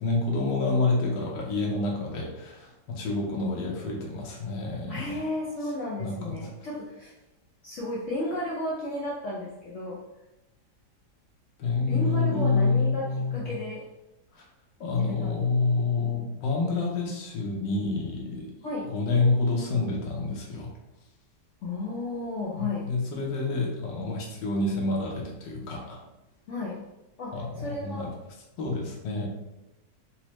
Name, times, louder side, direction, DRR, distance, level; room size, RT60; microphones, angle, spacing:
voice 1, 0.0-5.2 6.0-6.4 11.6-13.5 14.3-14.4 14.8-18.5 18.9-20.7 22.6-26.0 27.3-28.1 28.6-29.3, left 3 dB, 80° left, -1 dB, 1.5 m, -28 dB
voice 2, 4.9-7.1 7.6-10.0 11.9-13.8 14.9-15.3 18.6-18.9 21.6-22.9 26.5-26.8 27.2-28.0, left 2 dB, 65° left, -5 dB, 0.8 m, -33 dB
4.2 x 2.1 x 3.0 m, 0.94 s
omnidirectional pair, 2.0 m